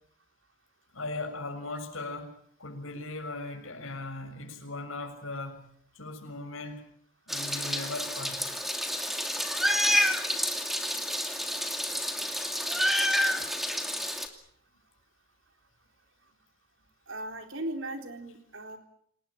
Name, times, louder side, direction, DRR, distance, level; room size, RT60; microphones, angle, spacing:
voice 1, 0.9-2.3 2.6-5.7 5.9-6.8 7.3-8.5, left 2 dB, 75° left, 5 dB, 6.7 m, -38 dB
Meow, 7.3-14.3, equal, ahead, 2.6 m, -29 dB
voice 2, 17.1-18.8, right 1 dB, 65° right, 5 dB, 4.0 m, -37 dB
28.0 x 19.5 x 8.7 m, 0.69 s
head